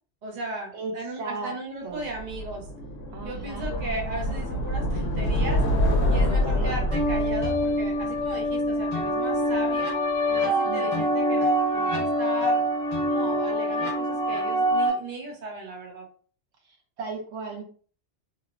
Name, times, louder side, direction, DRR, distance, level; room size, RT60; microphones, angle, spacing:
voice 1, 0.2-2.7 3.2-5.6 6.1-10.0 10.3-12.6 13.0-16.0, right 2 dB, 45° right, 1 dB, 0.7 m, -36 dB
voice 2, 1.2-1.5 1.8-2.1 3.1-3.7 6.6-6.7 10.6-11.1 16.6-17.6, right 4 dB, 75° right, 2 dB, 0.9 m, -36 dB
sound 1, 2.1-9.2, equal, 70° left, 0.8 m, -27 dB
sound 2, 6.9-14.9, equal, 35° left, 1.2 m, -25 dB
2.9 x 2.0 x 2.4 m, 0.43 s
omnidirectional pair, 1.2 m